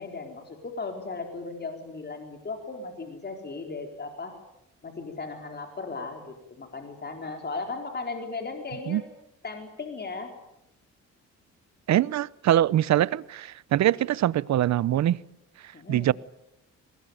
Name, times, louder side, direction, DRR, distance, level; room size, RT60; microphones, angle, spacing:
voice 1, 0.0-4.4 4.8-9.0 9.4-10.3 15.7-16.1, left 3 dB, 35° left, 4.2 m, -36 dB
voice 2, 11.9-15.2 15.9-16.1, right 12 dB, 65° right, 0.8 m, -23 dB
23.0 x 20.5 x 9.3 m
cardioid pair, 90°, 30 cm